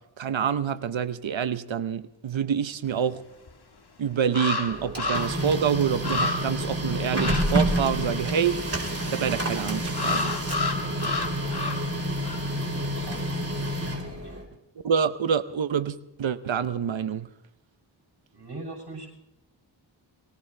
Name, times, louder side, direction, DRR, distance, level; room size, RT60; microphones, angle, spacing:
voice 1, 0.2-3.2 4.0-10.3 14.8-17.3, right 7 dB, 85° right, 13 dB, 0.8 m, -27 dB
sound 1, 3.5-3.6 4.3-5.5 5.8-5.9 6.0-6.6 7.1-7.4 9.9-11.9 12.2-12.4, left 3 dB, 60° left, 1.7 m, -30 dB
Printer, 4.7-14.4, right 1 dB, 30° right, 4.4 m, -29 dB
voice 2, 12.5-13.3 14.2-14.4 18.3-19.1, right 2 dB, 55° right, 0 dB, 7.0 m, -42 dB
24.5 x 18.0 x 3.3 m, 0.85 s
cardioid pair, 45°, 45 cm